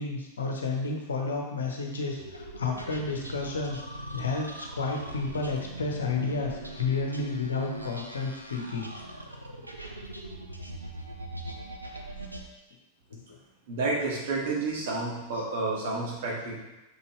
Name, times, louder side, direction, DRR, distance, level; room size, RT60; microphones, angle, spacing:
voice 1, 0.0-3.8 4.1-8.9 9.8-10.0 11.8-12.0 13.1-13.4 15.3-15.4, left 4 dB, 70° left, 2 dB, 1.0 m, -31 dB
sound 1, 2.2-12.5, right 1 dB, 85° right, 0.7 m, -41 dB
voice 2, 13.7-16.5, right 3 dB, 55° right, -4 dB, 2.0 m, -30 dB
6.2 x 5.5 x 3.2 m, 1.0 s
figure-of-eight pair, 90°, 0 cm